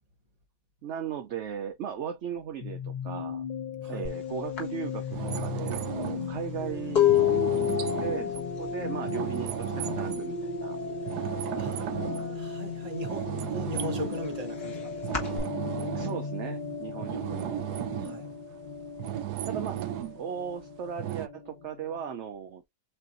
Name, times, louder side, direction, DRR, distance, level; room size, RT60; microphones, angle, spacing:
voice 1, 0.8-3.4 3.9-7.7 8.0-10.8 15.9-17.7 19.4-19.8 20.1-22.7, right 8 dB, 60° right, 0.8 m, -37 dB
sound 1, 2.6-22.1, left 4 dB, 50° left, 0.6 m, -36 dB
sound 2, 4.0-4.2 4.6-10.2 10.5-11.0 11.3-12.4 12.8-15.4, left 12 dB, 75° left, 2.1 m, -28 dB
sound 3, 5.1-10.4 10.8-12.8 13.0-14.3 14.6-18.3 18.7-20.2 21.0-21.3, right 13 dB, 90° right, 1.2 m, -35 dB
voice 2, 11.1-15.3 17.0-18.3, equal, 25° right, 1.1 m, -41 dB
7.6 x 2.6 x 2.6 m
omnidirectional pair, 1.7 m